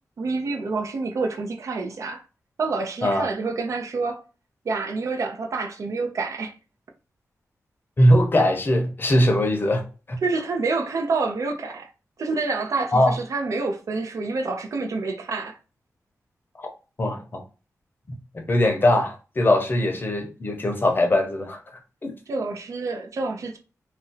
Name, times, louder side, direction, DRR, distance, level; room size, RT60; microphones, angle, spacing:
voice 1, 0.2-2.2 2.6-4.2 4.6-6.5 10.2-11.9 12.2-15.6 22.3-23.6, right 3 dB, 65° right, 0.5 m, -27 dB
voice 2, 8.0-10.2 12.9-13.1 16.6-16.7 17.0-17.4 18.3-21.6 22.0-22.1, left 1 dB, 35° left, 0.7 m, -21 dB
2.5 x 2.1 x 3.8 m
wide cardioid pair, 105°, 6 cm